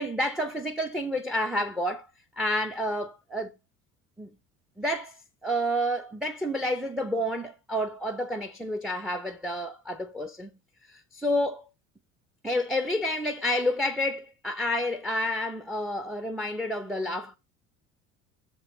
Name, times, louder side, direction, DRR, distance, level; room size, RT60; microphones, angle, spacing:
voice 1, 0.0-2.1 2.4-3.5 4.2-4.3 4.8-10.5 10.9-11.7 12.4-17.4, left 1 dB, ahead, 0.7 m, -29 dB
7.0 x 4.4 x 6.4 m
figure-of-eight pair, 65°, 41 cm